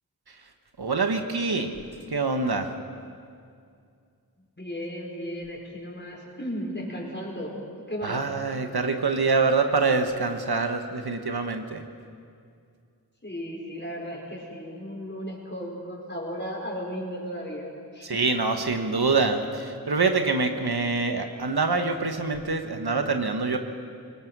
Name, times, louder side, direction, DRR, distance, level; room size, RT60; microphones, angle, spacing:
voice 1, 0.8-1.7 2.1-2.7 8.0-11.8 18.0-23.6, right 4 dB, 90° right, 6 dB, 1.3 m, -25 dB
voice 2, 4.6-7.6 7.9-8.2 13.2-17.7 17.9-18.3, equal, 30° left, -2 dB, 5.0 m, -35 dB
22.5 x 19.5 x 6.2 m, 2.3 s
wide cardioid pair, 50°, 37 cm